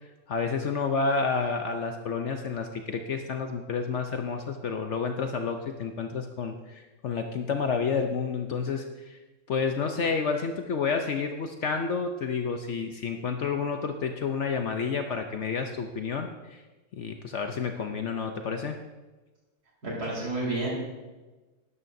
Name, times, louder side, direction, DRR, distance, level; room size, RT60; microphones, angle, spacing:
voice 1, 0.3-9.2 9.5-16.6 16.9-18.8, left 5 dB, 60° left, 5 dB, 0.8 m, -30 dB
voice 2, 19.8-20.7, right 2 dB, 75° right, -5 dB, 4.4 m, -30 dB
12.0 x 11.0 x 2.6 m, 1.2 s
omnidirectional pair, 1.7 m